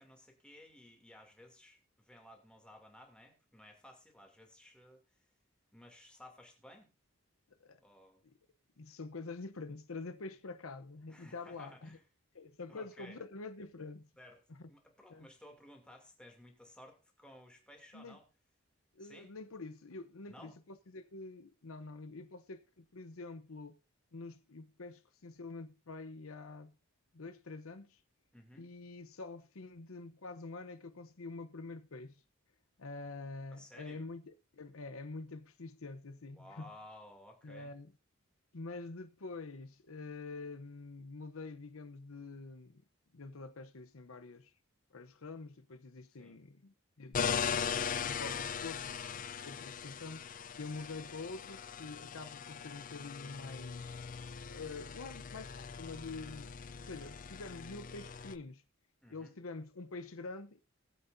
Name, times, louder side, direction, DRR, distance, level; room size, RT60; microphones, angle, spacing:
voice 1, 0.0-5.2 5.7-6.9 7.8-8.2 11.1-12.0 12.7-13.2 14.2-14.4 14.7-18.2 19.0-19.3 20.3-20.6 28.3-28.7 33.5-34.1 36.3-37.8 46.2-46.4 59.0-59.4, left 1 dB, 5° left, 2.6 m, -56 dB
voice 2, 7.5-7.8 8.2-8.3 8.8-12.0 12.3-14.1 14.6-14.7 15.1-15.3 17.9-18.2 18.9-23.8 24.1-26.8 27.1-28.0 28.5-32.2 32.8-36.7 37.4-37.9 38.5-42.8 43.1-44.5 44.9-50.3 50.6-53.9 54.5-58.6 59.1-60.6, left 3 dB, 80° left, 0.8 m, -46 dB
sound 1, 47.1-58.4, left 7 dB, 40° left, 0.5 m, -40 dB
20.0 x 8.1 x 2.6 m
head